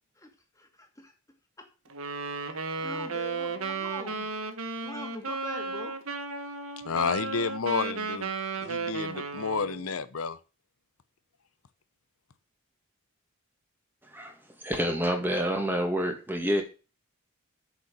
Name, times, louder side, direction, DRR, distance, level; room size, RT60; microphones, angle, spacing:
voice 1, 0.2-1.1 1.6-1.7 2.4-4.3 4.8-6.0, left 1 dB, 15° left, 2.3 m, -44 dB
Wind instrument woodwind instrument, 1.9-9.9, right 4 dB, 75° right, 1.5 m, -34 dB
voice 2, 6.8-8.3 8.6-10.4, left 5 dB, 75° left, 0.8 m, -30 dB
voice 3, 14.1-16.6, equal, 10° right, 2.1 m, -28 dB
8.2 x 6.9 x 6.8 m
head